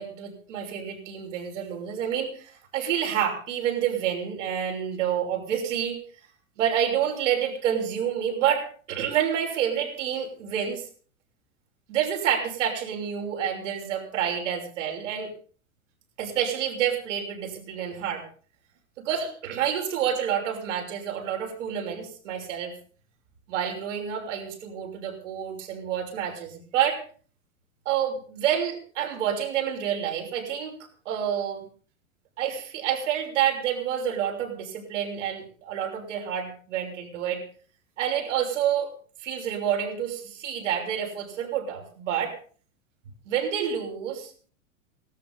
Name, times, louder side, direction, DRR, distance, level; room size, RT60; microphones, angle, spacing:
voice 1, 0.0-6.0 6.6-10.9 11.9-15.3 16.2-18.2 19.0-22.7 23.5-27.0 27.8-30.8 31.0-31.7 32.4-37.4 38.0-38.9 39.2-42.3 43.3-44.5, right 9 dB, 60° right, 2 dB, 6.1 m, -28 dB
18.5 x 13.0 x 5.6 m, 0.43 s
figure-of-eight pair, 90°, 41 cm